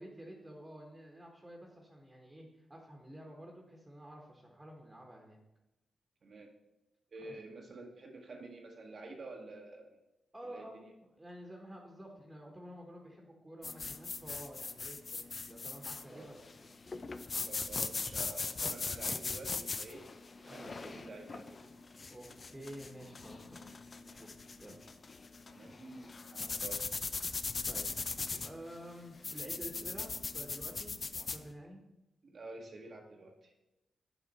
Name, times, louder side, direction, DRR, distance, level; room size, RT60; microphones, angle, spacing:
voice 1, 0.0-5.4 7.2-7.3 10.3-10.8 11.2-16.7 20.4-20.8 22.1-23.7 24.0-24.3 24.6-24.8 27.7-27.9 28.3-31.8, equal, 20° right, 0 dB, 1.3 m, -50 dB
voice 2, 7.1-10.0 10.4-10.9 16.1-16.3 17.5-20.0 20.4-21.6 25.5-26.8 32.2-33.5, right 2 dB, 55° right, 0 dB, 1.0 m, -49 dB
sound 1, 13.6-31.4, left 4 dB, 45° left, 0.4 m, -40 dB
8.0 x 5.0 x 4.2 m, 0.95 s
cardioid pair, 55°, 0 cm